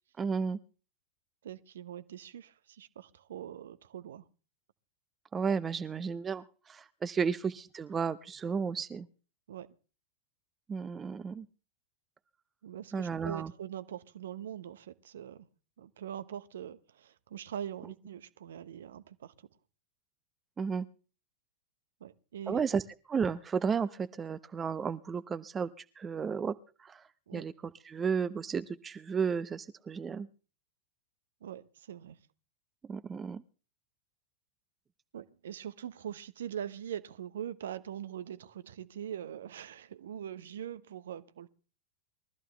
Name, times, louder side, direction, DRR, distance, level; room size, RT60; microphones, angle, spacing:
voice 1, 0.2-0.6 5.3-9.1 10.7-11.5 12.9-13.5 20.6-20.9 22.5-22.8 23.1-25.7 26.0-26.6 26.8-27.0 27.3-27.5 27.9-30.3 32.9-33.4, right 6 dB, 20° right, 0.8 m, -33 dB
voice 2, 1.4-4.3 9.5-9.7 12.6-15.5 15.8-19.5 22.0-22.6 27.3-27.5 31.4-32.2 35.1-41.5, right 9 dB, 60° right, 1.0 m, -42 dB
22.0 x 14.0 x 3.4 m
figure-of-eight pair, 90°, 0 cm